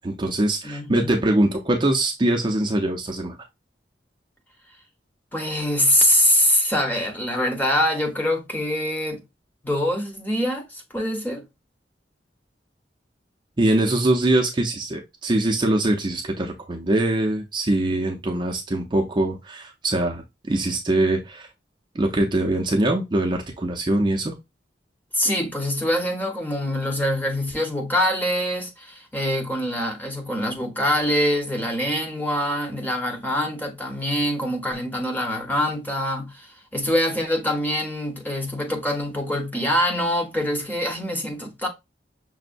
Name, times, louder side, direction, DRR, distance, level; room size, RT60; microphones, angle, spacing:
voice 1, 0.0-3.4 13.6-21.5 21.9-24.3, right 1 dB, 25° right, 0.5 m, -23 dB
voice 2, 0.6-1.2 5.3-9.2 9.6-11.4 25.1-36.5 36.7-41.7, left 1 dB, 10° left, 0.8 m, -24 dB
5.9 x 2.1 x 2.5 m
head